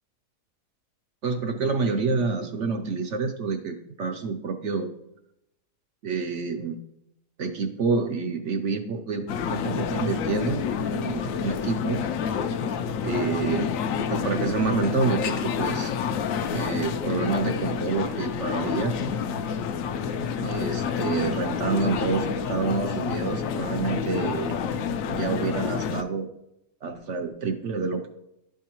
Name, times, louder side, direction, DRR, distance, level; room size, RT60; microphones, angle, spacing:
voice 1, 1.2-4.9 6.0-6.8 7.4-12.0 13.0-13.7 14.0-15.9 16.5-19.0 20.4-24.6 25.1-26.3 26.8-28.1, right 4 dB, 65° right, 5 dB, 0.7 m, -28 dB
sound 1, 9.3-26.0, left 7 dB, 70° left, 0.8 m, -28 dB
11.0 x 4.7 x 2.9 m, 0.83 s
omnidirectional pair, 1.7 m